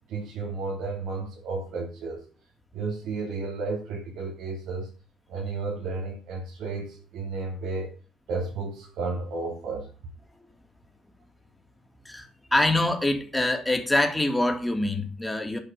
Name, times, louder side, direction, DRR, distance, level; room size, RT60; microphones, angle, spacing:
voice 1, 0.1-2.3 2.7-4.9 5.3-7.9 8.3-9.9, right 3 dB, 80° right, 3.8 m, -32 dB
voice 2, 12.0-15.6, left 1 dB, 10° left, 2.9 m, -25 dB
9.3 x 5.7 x 7.8 m
supercardioid pair, 65°, 0 cm